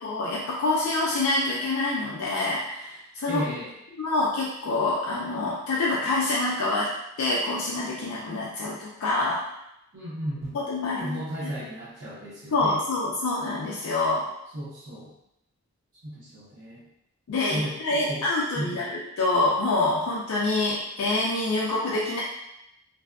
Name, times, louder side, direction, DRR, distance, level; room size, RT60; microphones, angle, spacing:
voice 1, 0.0-3.4 4.0-6.9 7.2-9.4 10.5-11.2 12.5-14.2 17.3-22.2, left 2 dB, 75° left, -5 dB, 0.4 m, -26 dB
voice 2, 3.3-3.7 9.9-10.6 11.0-12.8 14.5-15.1 16.0-16.8 17.3-18.2 18.5-18.8, equal, 80° right, -12 dB, 0.8 m, -34 dB
2.6 x 2.3 x 2.3 m, 0.83 s
head